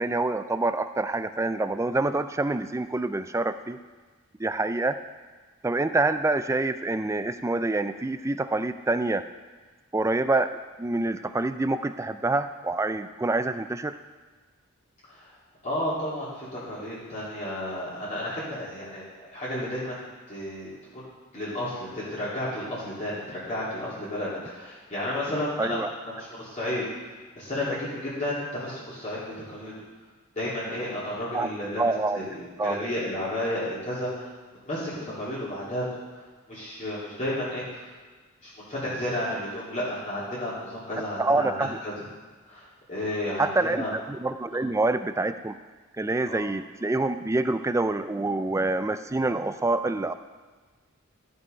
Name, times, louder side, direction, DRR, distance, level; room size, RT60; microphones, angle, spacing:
voice 1, 0.0-3.8 4.4-5.0 5.6-9.2 9.9-10.5 10.8-14.0 25.6-25.9 31.3-31.5 31.8-32.2 32.6-32.8 41.2-41.8 43.4-45.5 46.0-50.1, right 2 dB, 15° right, 10 dB, 0.3 m, -26 dB
voice 2, 15.6-19.1 19.3-21.1 21.3-26.8 27.3-29.7 30.3-34.3 34.6-35.8 36.5-37.6 38.4-41.9 42.5-43.5 43.7-43.9 46.3-46.4, left 1 dB, 35° left, -9 dB, 2.9 m, -32 dB
13.0 x 5.6 x 5.2 m, 1.4 s
head